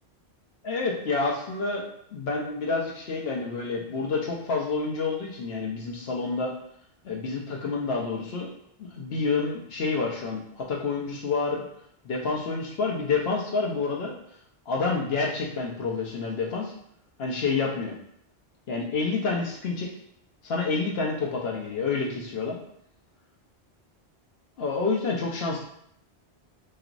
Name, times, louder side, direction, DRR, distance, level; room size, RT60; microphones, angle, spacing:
voice 1, 0.6-1.8 2.1-6.5 7.0-8.5 8.9-11.6 12.0-14.1 14.7-16.7 17.2-17.9 18.7-19.9 20.4-22.6 24.6-25.6, left 4 dB, 70° left, -1 dB, 0.9 m, -28 dB
3.0 x 2.9 x 2.5 m, 0.72 s
omnidirectional pair, 1.1 m